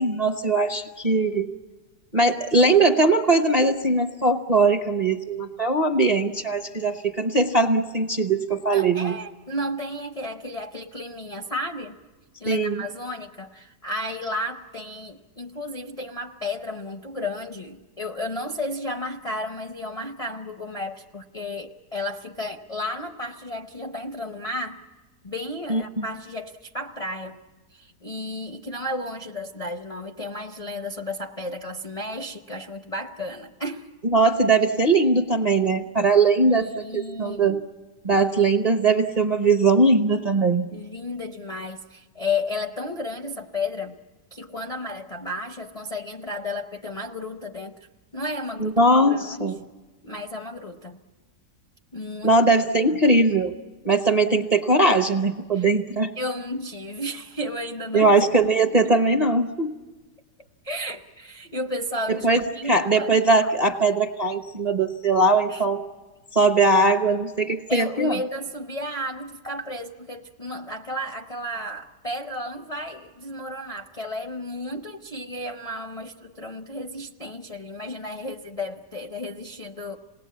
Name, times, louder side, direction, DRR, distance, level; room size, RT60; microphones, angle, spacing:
voice 1, 0.0-1.5 2.1-9.2 12.5-12.8 25.7-26.0 34.1-37.6 38.0-40.7 48.6-49.6 52.2-53.6 53.8-56.1 57.9-59.7 62.2-62.4 62.7-65.8 66.3-68.2, right 2 dB, 40° right, 6 dB, 0.6 m, -20 dB
voice 2, 8.7-12.0 12.4-24.8 25.2-27.4 27.7-33.9 36.4-37.6 40.7-44.0 44.3-47.8 48.1-49.5 50.0-51.0 51.9-52.4 52.8-53.0 54.3-54.4 55.5-55.7 56.2-58.1 58.4-58.6 60.6-63.1 65.5-65.6 67.7-80.0, left 1 dB, 40° left, 3 dB, 0.5 m, -33 dB
27.0 x 19.0 x 8.4 m, 1.2 s
omnidirectional pair, 1.8 m